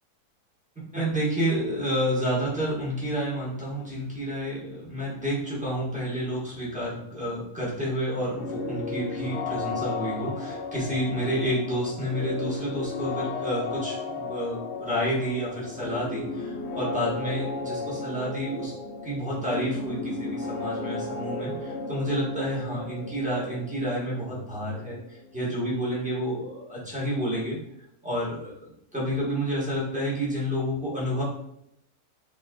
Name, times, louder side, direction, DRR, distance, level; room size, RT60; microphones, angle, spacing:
voice 1, 0.9-18.7 19.0-27.6 28.0-31.2, equal, 5° right, -8 dB, 1.7 m, -29 dB
sound 1, 8.3-25.9, left 3 dB, 55° left, 0.9 m, -34 dB
4.0 x 3.3 x 3.8 m, 0.77 s
omnidirectional pair, 1.6 m